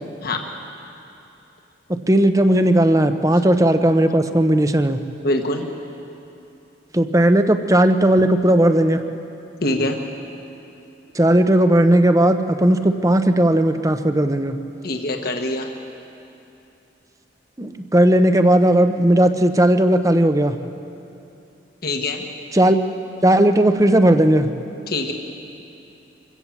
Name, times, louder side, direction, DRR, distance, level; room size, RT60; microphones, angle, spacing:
voice 1, 1.9-5.0 6.9-9.0 11.1-14.5 17.6-20.6 22.5-22.8 23.2-24.5, right 1 dB, 20° right, 8 dB, 0.8 m, -16 dB
voice 2, 5.2-5.7 9.6-10.0 14.8-15.7 21.8-22.2 24.9-25.1, left 1 dB, 55° left, 3 dB, 1.4 m, -23 dB
25.0 x 16.5 x 7.3 m, 2.8 s
head